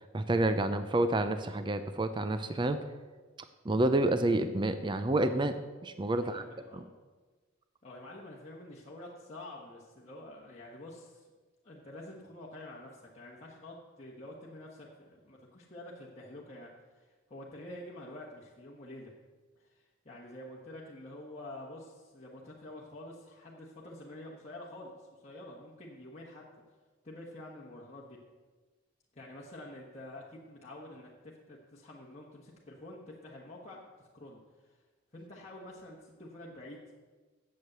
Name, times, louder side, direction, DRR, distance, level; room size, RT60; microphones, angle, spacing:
voice 1, 0.1-2.8 3.6-5.6 5.8-6.4, right 2 dB, 25° right, 10 dB, 0.5 m, -29 dB
voice 2, 6.1-6.8 7.8-11.3 11.6-19.1 19.6-26.4 27.0-28.2 29.1-34.8 35.1-36.8, left 1 dB, 30° left, -5 dB, 1.3 m, -48 dB
8.5 x 7.7 x 7.9 m, 1.3 s
head